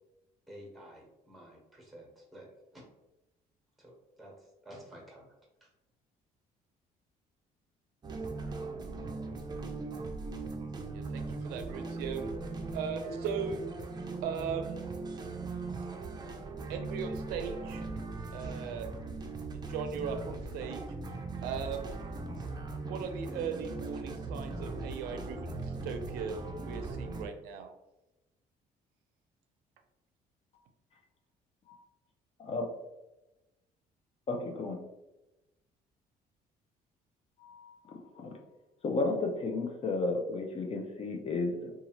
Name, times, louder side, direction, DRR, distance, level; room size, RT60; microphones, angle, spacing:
voice 1, 0.5-2.5 2.7-2.8 3.8-4.3 4.6-5.3 5.6-5.7, equal, ahead, -2 dB, 1.2 m, -51 dB
sound 1, 8.0-27.2, right 3 dB, 25° right, 0.5 m, -39 dB
voice 2, 10.9-12.3 12.7-13.6 14.2-14.8 16.7-17.9 18.3-18.9 19.5-20.8 21.4-21.8 22.9-27.7, right 6 dB, 85° right, 6 dB, 0.4 m, -38 dB
voice 3, 32.4-32.7 34.3-34.8 37.4-38.4 38.8-41.7, left 3 dB, 40° left, 3 dB, 0.5 m, -33 dB
2.7 x 2.4 x 2.9 m, 0.97 s
cardioid pair, 90°, 16 cm